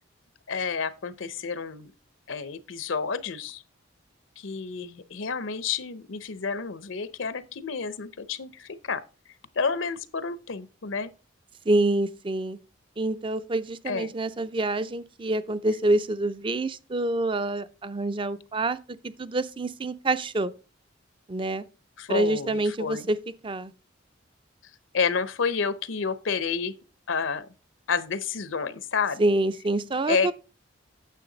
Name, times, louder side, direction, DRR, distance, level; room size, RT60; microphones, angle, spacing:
voice 1, 0.5-1.9 2.3-3.6 4.4-9.0 9.6-11.1 13.9-14.1 22.0-23.1 24.9-26.7 27.1-27.5 27.9-29.2 30.1-30.3, left 5 dB, 75° left, 0.7 m, -30 dB
voice 2, 11.7-12.6 13.0-20.5 21.3-21.6 22.1-23.2 23.4-23.7 29.2-30.3, right 2 dB, 25° right, 0.5 m, -26 dB
9.2 x 7.0 x 3.9 m
head